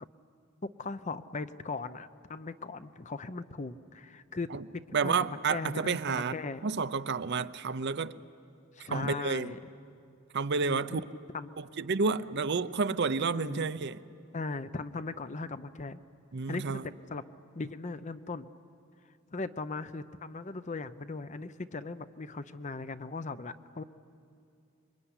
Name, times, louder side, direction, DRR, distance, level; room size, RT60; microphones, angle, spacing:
voice 1, 0.8-6.6 8.7-9.6 10.6-11.0 11.3-11.5 13.3-13.7 14.3-16.0 16.5-16.8 17.1-17.2 17.5-18.5 19.3-23.8, left 3 dB, 35° left, 0.7 m, -38 dB
voice 2, 4.9-6.4 6.6-8.1 8.9-9.5 10.3-11.0 11.6-14.0 16.3-16.9, right 4 dB, 55° right, 0.6 m, -30 dB
26.5 x 22.5 x 9.9 m
head